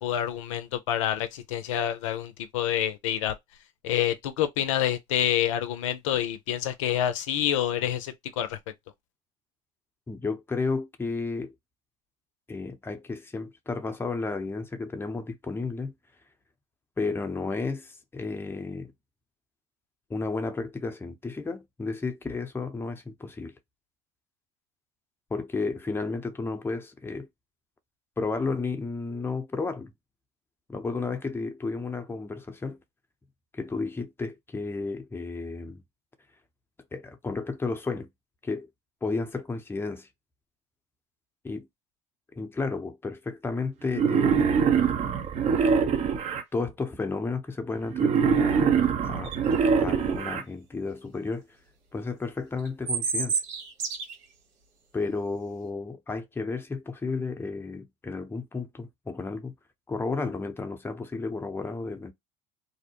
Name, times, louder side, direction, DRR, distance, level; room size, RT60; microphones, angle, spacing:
voice 1, 0.0-3.3 3.8-8.6, left 11 dB, 85° left, 0.5 m, -27 dB
voice 2, 10.1-11.5 12.5-15.9 17.0-18.9 20.1-23.5 25.3-27.3 28.2-29.9 30.7-32.8 33.5-35.8 36.9-38.1 38.4-38.7 39.0-40.1 41.4-41.7 42.4-44.6 46.5-48.8 49.0-49.3 49.8-51.5 51.9-53.4 54.9-59.5 59.9-62.1, left 3 dB, 15° left, 0.7 m, -32 dB
Wild animals, 43.9-46.4 47.9-50.4, right 6 dB, 40° right, 0.8 m, -23 dB
sound 1, 49.2-49.6 52.7-54.1, right 5 dB, 75° right, 1.1 m, -29 dB
2.7 x 2.0 x 2.8 m
hypercardioid pair, 85°, 16 cm